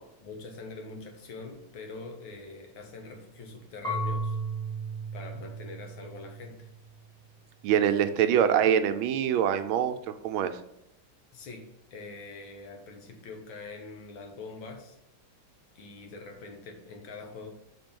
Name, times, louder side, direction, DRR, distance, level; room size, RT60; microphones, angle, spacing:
voice 1, 0.2-4.4 5.1-6.7 8.2-8.7 11.3-11.6 11.9-15.0 15.8-17.5, left 3 dB, 70° left, 3 dB, 1.9 m, -44 dB
Marimba xylophone / Wood, 3.8-6.7, right 2 dB, ahead, 1.7 m, -34 dB
voice 2, 7.6-10.6, right 9 dB, 80° right, 9 dB, 1.4 m, -24 dB
6.1 x 4.4 x 5.2 m, 0.85 s
omnidirectional pair, 2.3 m